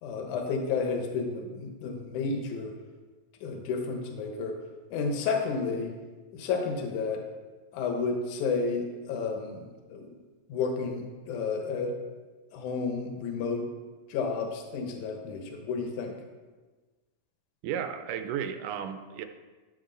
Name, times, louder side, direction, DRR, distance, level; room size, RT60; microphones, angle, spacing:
voice 1, 0.0-2.7 3.4-4.5 4.9-5.9 6.3-7.2 7.7-10.2 10.5-11.9 12.5-13.7 14.1-16.1, left 4 dB, 75° left, 3 dB, 2.5 m, -31 dB
voice 2, 17.6-19.3, right 8 dB, 85° right, 8 dB, 2.2 m, -33 dB
12.5 x 7.1 x 3.9 m, 1.3 s
omnidirectional pair, 3.7 m